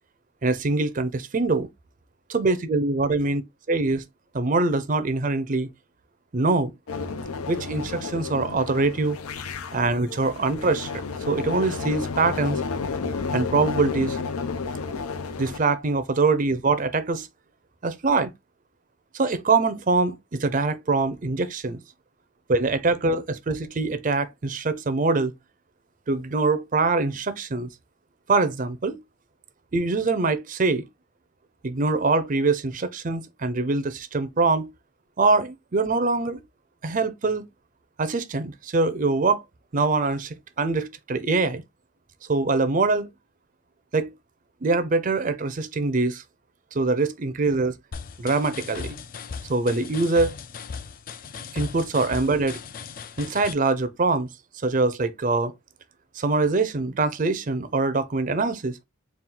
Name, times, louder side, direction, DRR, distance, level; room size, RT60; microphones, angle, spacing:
voice 1, 0.4-1.7 2.3-3.4 3.7-4.0 4.3-5.7 6.3-6.7 7.5-9.2 9.7-12.6 13.3-14.2 15.4-17.3 17.8-18.3 19.1-21.8 22.5-25.3 26.1-27.7 28.3-29.0 29.7-30.8 31.6-34.7 35.2-36.4 36.8-37.5 38.0-39.4 39.7-41.6 42.3-43.1 43.9-44.1 44.6-46.2 46.7-47.7 48.2-49.0 49.4-50.3 51.5-52.6 53.2-54.3 54.6-55.5 56.2-58.8, right 3 dB, 35° right, 0.5 m, -23 dB
sound 1, 6.9-15.6, left 4 dB, 90° left, 0.6 m, -31 dB
sound 2, 47.9-53.5, left 5 dB, 40° left, 0.3 m, -37 dB
4.2 x 2.3 x 3.7 m
head